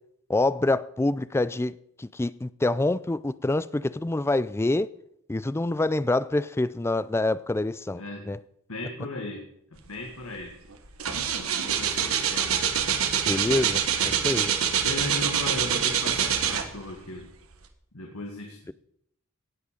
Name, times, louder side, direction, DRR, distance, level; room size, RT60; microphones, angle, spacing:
voice 1, 0.3-4.9 5.3-8.4 13.3-14.5, left 2 dB, 10° left, 0.4 m, -26 dB
voice 2, 8.7-9.5 9.7-10.6 11.4-12.6 13.4-13.5 14.2-14.4 14.8-17.3 17.9-18.7, left 2 dB, 80° left, 1.8 m, -37 dB
sound 1, 10.2-10.4 10.7-17.0 17.5-17.6, right 8 dB, 75° right, 1.3 m, -25 dB
17.5 x 7.4 x 5.1 m
head